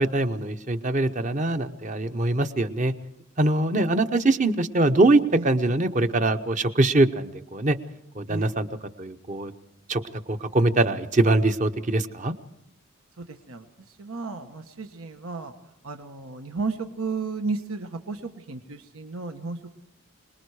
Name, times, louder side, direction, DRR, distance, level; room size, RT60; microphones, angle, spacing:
voice 1, 0.0-2.9 3.4-7.8 8.1-8.7 9.0-9.5 9.9-10.0 10.3-12.3, right 2 dB, 35° right, 9 dB, 0.9 m, -23 dB
voice 2, 13.2-13.6 14.0-15.5 15.8-19.8, right 4 dB, 85° right, 6 dB, 1.3 m, -33 dB
26.5 x 20.5 x 4.9 m, 0.79 s
head